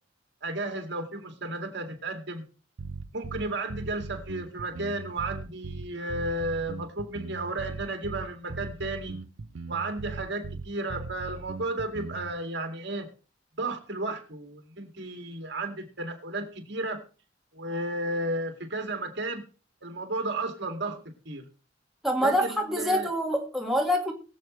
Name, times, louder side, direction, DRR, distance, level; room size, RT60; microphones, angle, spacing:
voice 1, 0.4-2.4 3.1-9.2 9.7-13.1 13.6-17.0 17.5-19.4 19.8-21.4 22.2-23.1, right 2 dB, 65° right, 2.3 m, -33 dB
sound 1, 2.8-12.4, right 4 dB, 80° right, 0.7 m, -39 dB
voice 2, 22.0-24.1, equal, ahead, 1.9 m, -26 dB
22.0 x 7.7 x 3.2 m
head